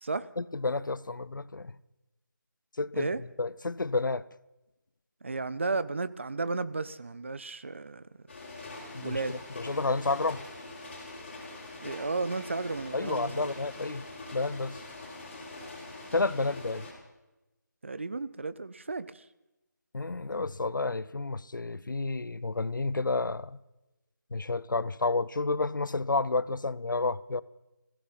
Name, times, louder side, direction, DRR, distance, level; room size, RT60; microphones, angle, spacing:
voice 1, 0.4-1.7 2.8-3.1 3.4-4.2 8.9-10.4 12.9-14.0 14.3-14.8 16.1-16.9 19.9-23.6 24.3-27.4, left 3 dB, 90° left, 0.8 m, -30 dB
voice 2, 5.2-8.0 9.0-9.5 11.8-13.5 17.8-19.2, right 3 dB, 40° right, 0.6 m, -33 dB
sound 1, 8.3-16.9, left 2 dB, 35° left, 5.6 m, -44 dB
21.5 x 16.0 x 4.1 m
figure-of-eight pair, 175°, 10 cm